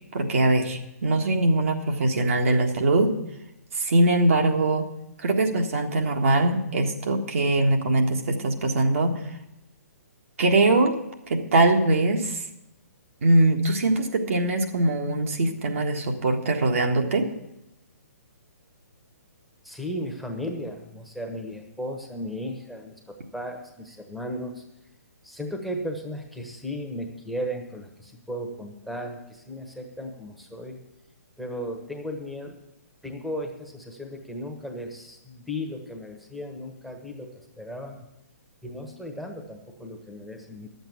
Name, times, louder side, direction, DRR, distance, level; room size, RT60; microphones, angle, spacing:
voice 1, 0.1-3.1 3.7-4.9 5.2-9.1 10.4-10.9 11.3-12.4 13.2-17.3, right 2 dB, 55° right, 3 dB, 1.5 m, -22 dB
voice 2, 19.6-24.6 25.2-30.8 31.4-32.6 33.0-38.0 38.6-40.7, equal, ahead, 3 dB, 1.3 m, -35 dB
11.0 x 8.1 x 7.3 m, 0.88 s
figure-of-eight pair, 125°, 9 cm